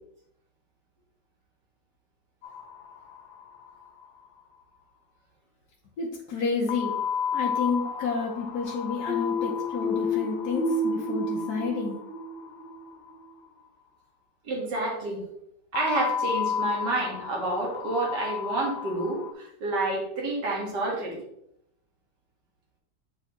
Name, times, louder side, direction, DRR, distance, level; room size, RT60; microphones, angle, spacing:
sound 1, 2.4-3.4 3.7-3.8 4.0-4.1 6.7-12.8 15.7-19.3, left 7 dB, 85° left, 1.5 m, -33 dB
voice 1, 6.0-7.0 7.3-12.0, left 5 dB, 65° left, -2 dB, 1.4 m, -30 dB
sound 2, 9.1-12.7, left 1 dB, 5° right, 1.3 m, -30 dB
voice 2, 14.4-15.2 15.7-21.2, right 2 dB, 70° right, -2 dB, 2.4 m, -29 dB
7.7 x 4.6 x 3.0 m, 0.75 s
omnidirectional pair, 1.9 m